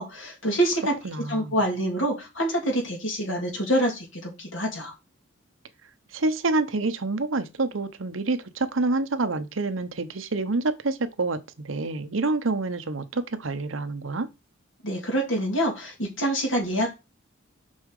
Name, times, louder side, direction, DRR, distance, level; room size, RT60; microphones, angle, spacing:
voice 1, 0.0-0.9 1.3-4.9 14.8-16.9, right 1 dB, 75° left, 2.9 m, -26 dB
voice 2, 1.0-1.6 6.1-11.4 11.6-14.3, right 3 dB, 80° right, 0.9 m, -27 dB
6.2 x 5.6 x 4.8 m
head